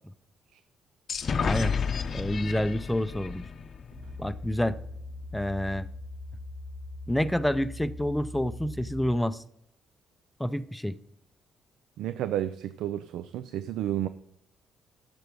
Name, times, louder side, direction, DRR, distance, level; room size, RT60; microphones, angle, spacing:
sound 1, 1.1-4.8, left 6 dB, 50° left, 0.6 m, -32 dB
voice 1, 1.4-1.7 2.1-3.4 4.2-4.8 5.3-5.9 7.1-9.4 10.4-11.0, left 1 dB, 5° left, 0.5 m, -28 dB
sound 2, 3.9-9.2, left 2 dB, 40° right, 3.2 m, -41 dB
voice 2, 12.0-14.1, right 12 dB, 85° right, 0.3 m, -31 dB
7.9 x 7.0 x 5.3 m
cardioid pair, 90°, 0 cm